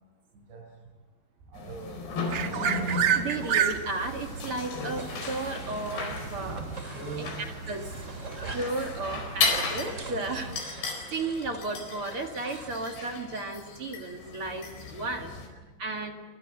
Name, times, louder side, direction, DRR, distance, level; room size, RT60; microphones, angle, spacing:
voice 1, 0.3-0.7 1.5-2.2 6.1-6.7 6.9-7.4 7.8-8.0, right 3 dB, 80° right, -2 dB, 8.1 m, -41 dB
sound 1, 1.5-15.5, left 4 dB, 80° left, 6.6 m, -35 dB
sound 2, 2.3-10.6, right 8 dB, 60° right, 1.9 m, -33 dB
voice 2, 2.9-6.6 7.2-7.3 7.7-7.9 8.5-15.3 15.8-16.2, right 2 dB, 45° right, 4 dB, 2.2 m, -34 dB
sound 3, 5.0-6.2 6.5-8.8 9.4-12.7, right 3 dB, 25° right, 2.3 m, -44 dB
26.0 x 24.5 x 7.9 m, 1.2 s
omnidirectional pair, 4.8 m